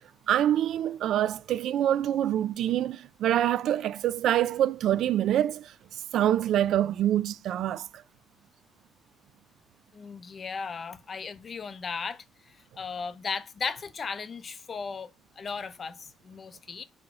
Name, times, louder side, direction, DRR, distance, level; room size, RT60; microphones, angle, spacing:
voice 1, 0.3-5.7 6.1-7.9, right 11 dB, 70° right, 0.3 m, -25 dB
voice 2, 9.9-15.1 15.4-16.8, left 5 dB, 35° left, 0.6 m, -36 dB
5.3 x 4.9 x 4.7 m
cardioid pair, 150°, 0 cm